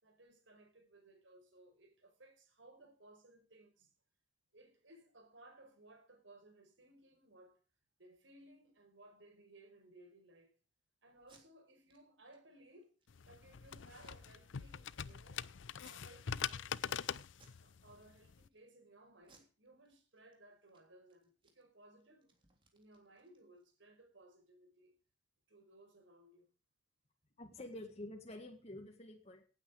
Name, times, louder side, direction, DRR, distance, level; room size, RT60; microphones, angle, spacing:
voice 1, 0.0-3.9 4.5-7.6 8.0-10.5 11.0-12.9 13.3-15.4 15.9-17.1 17.6-22.3 22.7-25.0 25.5-26.5, right 1 dB, 80° right, 4.9 m, -62 dB
Packing tape duct tape, 11.2-11.4 11.9-12.0 12.3-12.4 12.8-13.2 13.9-14.7 15.0-15.1 15.7-16.4 16.8-17.0 17.3-17.6 18.0-18.6 19.2-20.3 20.6-20.8 21.1-23.7, right 3 dB, 25° right, 3.2 m, -68 dB
sound 1, 13.1-18.5, left 8 dB, 80° left, 0.6 m, -43 dB
voice 2, 27.4-29.4, left 1 dB, 35° left, 1.9 m, -49 dB
17.5 x 8.9 x 4.9 m
head